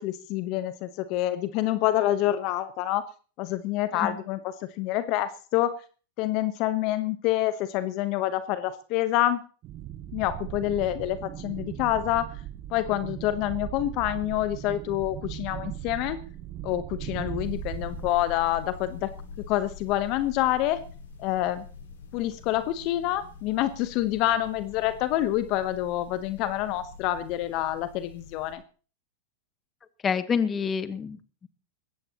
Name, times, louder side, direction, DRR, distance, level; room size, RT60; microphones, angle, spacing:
voice 1, 0.0-3.0 3.4-4.4 4.8-5.7 6.2-9.4 10.1-12.3 12.7-16.2 16.6-19.1 19.4-20.8 21.2-21.6 22.1-28.6, left 14 dB, 50° left, 12 dB, 1.1 m, -27 dB
sound 1, 9.6-18.1, right 12 dB, 40° right, 1.1 m, -38 dB
sound 2, 17.4-28.5, left 5 dB, 75° left, 5.1 m, -44 dB
voice 2, 30.0-31.5, left 6 dB, 25° left, 12 dB, 1.3 m, -28 dB
20.5 x 15.5 x 3.0 m, 0.39 s
hypercardioid pair, 100°, 0 cm